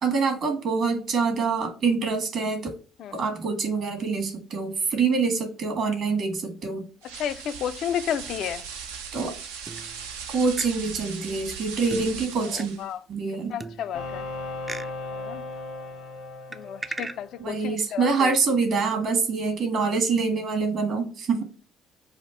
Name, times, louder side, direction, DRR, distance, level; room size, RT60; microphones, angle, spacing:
voice 1, 0.0-2.7 3.1-6.8 9.1-9.3 10.3-12.7 13.1-13.6 17.4-21.4, right 4 dB, 60° right, 1.5 m, -25 dB
sound 1, 7.0-12.9, right 6 dB, 80° right, 0.5 m, -38 dB
voice 2, 7.1-8.6 12.4-13.0 13.5-14.3 15.1-15.4 16.5-18.4, left 9 dB, 60° left, 0.4 m, -32 dB
sound 2, 8.2-9.1 9.7-10.3 10.6-10.7 11.9-12.6 13.6-14.3 14.7-14.9 16.5-17.2, right 3 dB, 25° right, 0.4 m, -39 dB
sound 3, 13.9-17.6, left 2 dB, 80° left, 1.0 m, -37 dB
5.1 x 2.4 x 4.1 m
hypercardioid pair, 55°, 0 cm